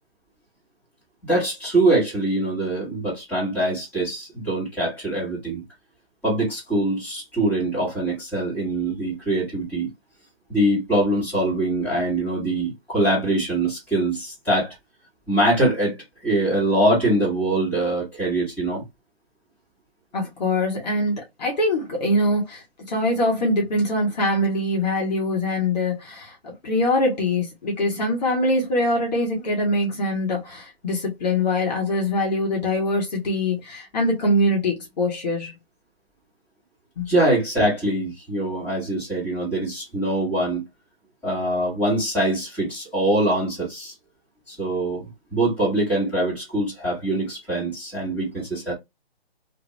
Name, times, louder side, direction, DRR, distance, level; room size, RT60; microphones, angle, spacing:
voice 1, 1.2-5.6 6.2-9.9 10.5-14.7 15.3-16.0 16.2-18.8 37.1-40.6 41.2-43.9 44.5-48.7, right 1 dB, 5° left, 1.7 m, -23 dB
voice 2, 20.1-35.5 37.0-37.1, left 1 dB, 45° left, 1.2 m, -23 dB
2.8 x 2.6 x 3.1 m
hypercardioid pair, 160°, 30 cm